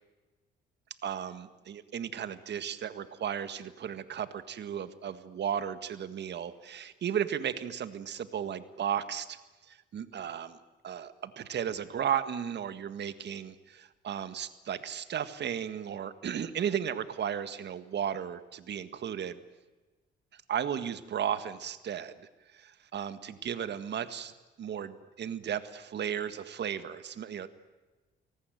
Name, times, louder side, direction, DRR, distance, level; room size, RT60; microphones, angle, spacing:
voice 1, 1.0-9.4 9.7-10.6 10.8-19.4 20.3-22.1 22.5-24.3 24.6-27.5, right 9 dB, 60° right, 12 dB, 1.8 m, -35 dB
30.0 x 19.0 x 9.3 m, 1.2 s
cardioid pair, 90°, 20 cm